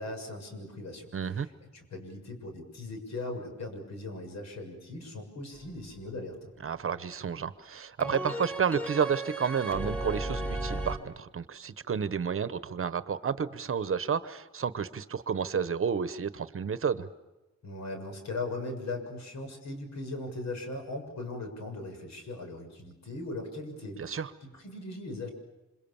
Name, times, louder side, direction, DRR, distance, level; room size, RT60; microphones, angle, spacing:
voice 1, 0.0-6.5 17.6-25.3, left 2 dB, 65° left, 4 dB, 6.9 m, -39 dB
voice 2, 1.1-1.5 6.6-17.1 24.0-24.3, right 6 dB, 45° right, 14 dB, 1.0 m, -31 dB
sound 1, 8.0-11.0, right 1 dB, 5° left, 2.6 m, -34 dB
27.0 x 27.0 x 7.2 m, 1.1 s
wide cardioid pair, 170°, 29 cm